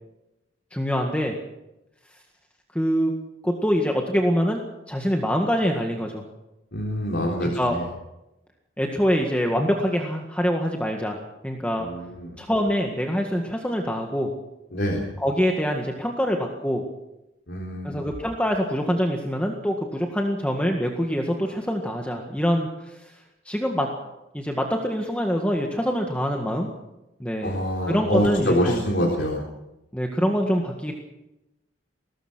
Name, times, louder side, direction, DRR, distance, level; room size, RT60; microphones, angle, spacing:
voice 1, 0.7-1.3 2.7-3.1 3.4-4.6 4.9-6.2 7.4-7.8 8.8-11.2 11.4-11.9 12.4-14.3 15.2-16.8 17.8-23.1 23.5-23.9 24.3-26.7 27.2-28.8 29.9-30.9, equal, 5° left, 1 dB, 1.8 m, -25 dB
voice 2, 6.7-7.8 11.8-12.3 14.7-15.1 17.5-18.0 27.4-29.4, equal, 70° left, -1 dB, 3.7 m, -25 dB
22.0 x 19.0 x 6.3 m, 0.94 s
head